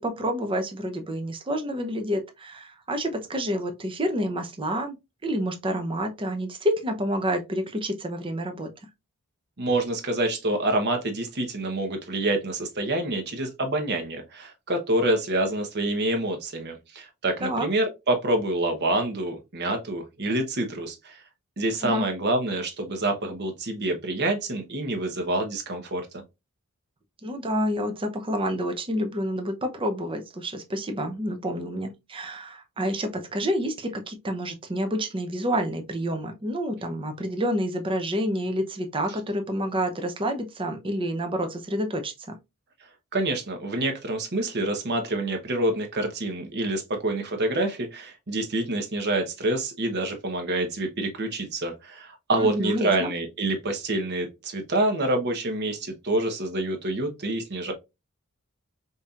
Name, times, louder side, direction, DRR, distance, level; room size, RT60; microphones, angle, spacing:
voice 1, 0.0-5.0 5.2-8.7 17.4-17.7 21.8-22.1 27.2-42.4 52.4-53.1, equal, 25° right, 0.6 m, -28 dB
voice 2, 9.6-21.2 21.6-26.2 43.1-57.7, right 2 dB, 50° right, 1.0 m, -27 dB
5.3 x 2.7 x 2.4 m
head